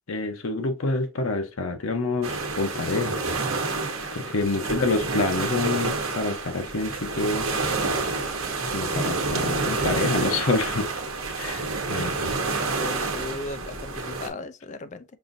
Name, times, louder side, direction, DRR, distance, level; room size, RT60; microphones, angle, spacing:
voice 1, 0.1-3.2 4.1-7.6 8.7-10.8 11.4-12.3, left 3 dB, 85° left, 0.8 m, -27 dB
sound 1, 2.2-14.3, right 3 dB, 80° right, 1.0 m, -28 dB
voice 2, 4.0-4.3 12.7-15.0, left 3 dB, 35° left, 0.4 m, -37 dB
sound 2, 6.6-14.3, right 1 dB, 50° right, 1.5 m, -46 dB
5.6 x 2.6 x 2.6 m
head